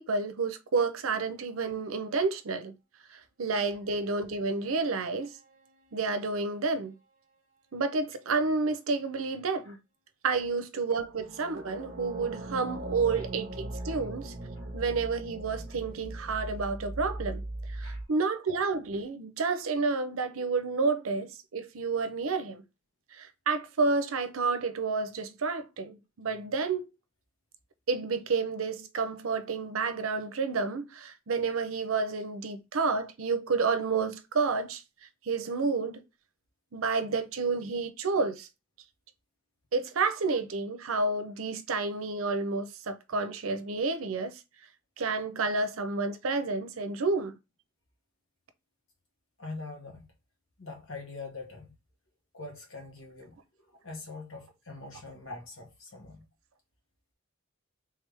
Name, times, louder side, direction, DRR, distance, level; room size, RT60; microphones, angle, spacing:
voice 1, 0.0-2.7 3.1-5.3 5.9-7.0 7.7-9.8 10.2-14.3 14.7-17.4 17.7-22.6 23.1-26.9 27.9-34.8 35.2-36.0 36.7-38.5 39.7-44.4 45.0-47.4, right 4 dB, 75° right, 0.6 m, -30 dB
sound 1, 5.1-5.9 11.1-18.0, right 1 dB, 40° right, 0.9 m, -40 dB
voice 2, 49.4-50.1 50.6-51.7 52.3-56.3, left 3 dB, 65° left, 1.2 m, -44 dB
3.5 x 3.3 x 3.3 m
head